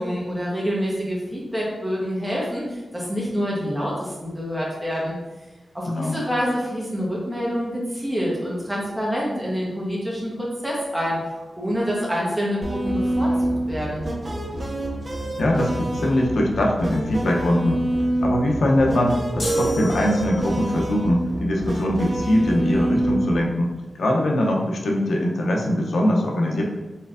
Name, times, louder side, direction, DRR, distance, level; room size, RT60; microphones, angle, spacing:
voice 1, 0.0-5.1 5.7-14.0, equal, 10° right, -5 dB, 1.1 m, -27 dB
voice 2, 5.9-6.2 15.4-17.8 18.2-26.6, left 1 dB, 85° left, 0 dB, 0.6 m, -22 dB
sound 1, 12.6-23.4, right 1 dB, 30° right, 0.5 m, -26 dB
sound 2, 19.4-20.8, right 1 dB, 60° left, 1.1 m, -27 dB
4.3 x 3.5 x 2.5 m, 1.1 s
wide cardioid pair, 130°, 0 cm